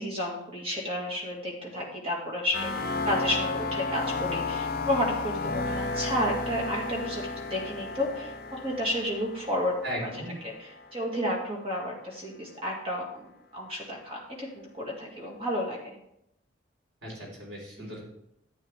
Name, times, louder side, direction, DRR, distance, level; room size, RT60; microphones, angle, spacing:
voice 1, 0.0-9.7 10.0-13.3 13.5-14.5 14.7-15.9 17.8-17.9, left 1 dB, 30° right, -1 dB, 2.2 m, -32 dB
sound 1, 2.5-11.1, left 3 dB, 50° left, 0.8 m, -33 dB
voice 2, 9.8-10.4 17.0-18.0, equal, 85° right, -3 dB, 4.0 m, -37 dB
11.5 x 8.4 x 3.6 m, 0.79 s
head